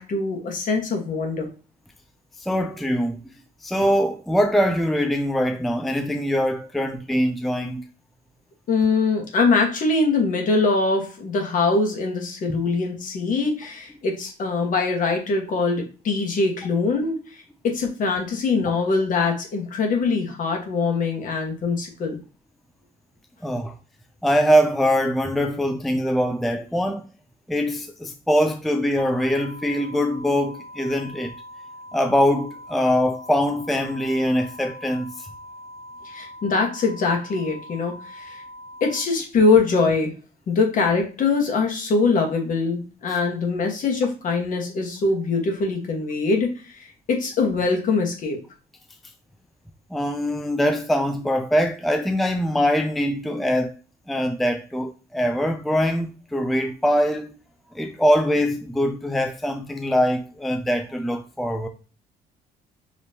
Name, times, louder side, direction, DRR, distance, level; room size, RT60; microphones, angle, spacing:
voice 1, 0.0-1.5 8.7-17.2 17.6-22.2 36.0-38.4 38.8-40.1 40.5-48.4, left 4 dB, 50° left, 1.3 m, -23 dB
voice 2, 2.4-3.2 3.6-7.8 12.5-12.6 23.4-23.7 24.2-27.0 27.5-31.3 31.9-35.3 49.9-53.7 54.1-57.3 57.7-61.7, equal, ahead, 0.4 m, -23 dB
sound 1, 29.0-39.0, equal, 80° left, 2.2 m, -42 dB
5.3 x 3.0 x 2.8 m
cardioid pair, 110°, 17 cm